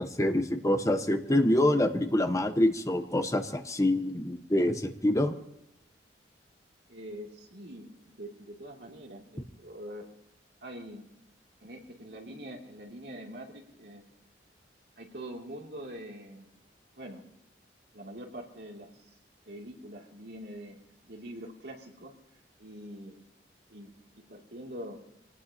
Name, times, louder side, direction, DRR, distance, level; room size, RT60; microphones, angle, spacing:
voice 1, 0.0-5.4, left 1 dB, 20° left, 7 dB, 1.0 m, -26 dB
voice 2, 6.9-10.1 10.6-11.1 11.6-14.1 15.0-16.5 17.0-17.2 17.9-19.1 19.5-20.8 21.0-22.2 22.6-23.2 23.7-25.0, equal, 65° right, 0 dB, 2.8 m, -44 dB
25.0 x 18.5 x 2.9 m, 0.81 s
head